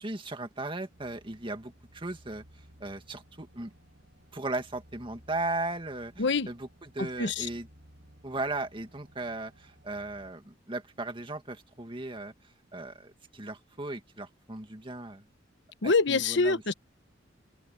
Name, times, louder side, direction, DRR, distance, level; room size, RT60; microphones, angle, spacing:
voice 1, 0.0-2.4 2.8-3.7 4.3-7.7 8.2-12.3 12.7-15.2 15.8-16.6, right 2 dB, 25° right, 2.0 m, -37 dB
sound 1, 0.9-10.3, equal, 65° right, 5.9 m, -58 dB
voice 2, 6.2-6.5 7.0-7.5 15.8-16.7, left 4 dB, 65° left, 1.1 m, -26 dB
open air
head